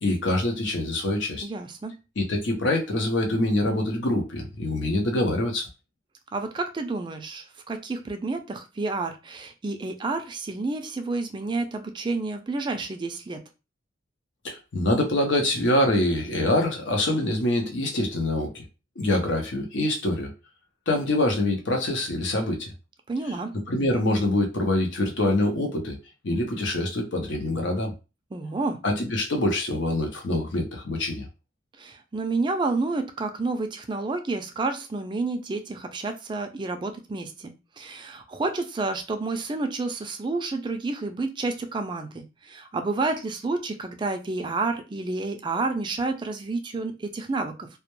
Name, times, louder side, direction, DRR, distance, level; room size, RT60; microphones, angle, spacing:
voice 1, 0.0-1.5 2.2-5.7 14.4-18.6 19.0-20.3 20.9-22.7 23.7-26.0 26.2-27.9 28.8-31.2, left 1 dB, 70° left, 3 dB, 0.7 m, -25 dB
voice 2, 1.4-2.0 6.3-13.4 23.1-23.5 28.3-28.8 31.8-47.7, right 3 dB, 25° right, 6 dB, 0.3 m, -30 dB
2.2 x 2.1 x 2.9 m, 0.29 s
head